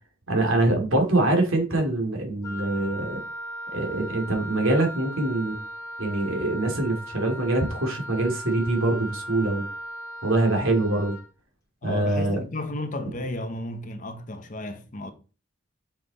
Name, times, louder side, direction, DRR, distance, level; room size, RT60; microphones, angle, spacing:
voice 1, 0.3-3.2 3.7-5.6 6.0-9.7 10.2-11.2 11.8-12.4, right 2 dB, 70° right, 2.6 m, -24 dB
Wind instrument woodwind instrument, 2.4-11.3, right 1 dB, 15° left, 1.4 m, -38 dB
voice 2, 11.8-15.1, left 1 dB, 35° left, 1.0 m, -33 dB
7.0 x 5.8 x 4.1 m
head